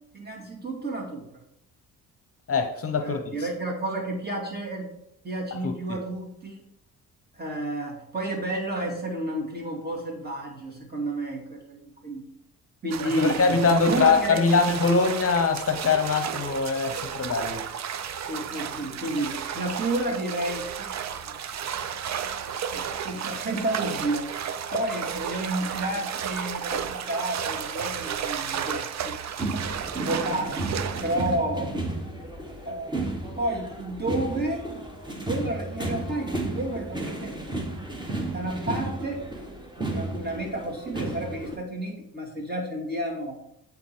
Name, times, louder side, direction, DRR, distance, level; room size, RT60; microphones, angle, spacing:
voice 1, 0.1-1.4 3.0-4.9 5.2-6.6 7.3-12.2 12.8-14.6 18.3-21.4 22.7-24.3 24.7-29.3 29.9-30.6 31.0-31.8 32.6-33.0 33.4-34.7 35.3-37.4 38.3-39.3 39.8-43.4, right 1 dB, 30° right, -1 dB, 2.3 m, -31 dB
voice 2, 2.5-3.5 5.5-6.0 13.0-17.6, left 4 dB, 40° left, 6 dB, 0.9 m, -23 dB
sound 1, 12.9-31.4, right 8 dB, 50° right, 0.6 m, -33 dB
sound 2, 29.4-41.5, right 2 dB, 15° right, 1.5 m, -33 dB
8.6 x 3.9 x 4.4 m, 0.77 s
cardioid pair, 85°, 35 cm